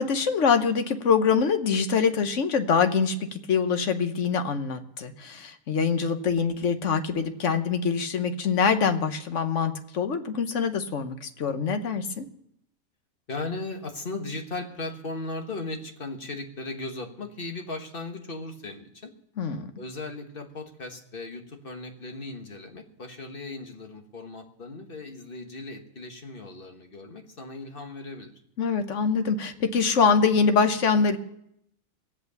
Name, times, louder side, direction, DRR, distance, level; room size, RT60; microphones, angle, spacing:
voice 1, 0.0-12.2 19.4-19.7 28.6-31.2, left 5 dB, 60° left, 8 dB, 1.3 m, -24 dB
voice 2, 13.3-19.1 19.7-28.3, left 2 dB, 40° left, 4 dB, 1.6 m, -37 dB
18.5 x 8.1 x 6.9 m, 0.76 s
omnidirectional pair, 1.5 m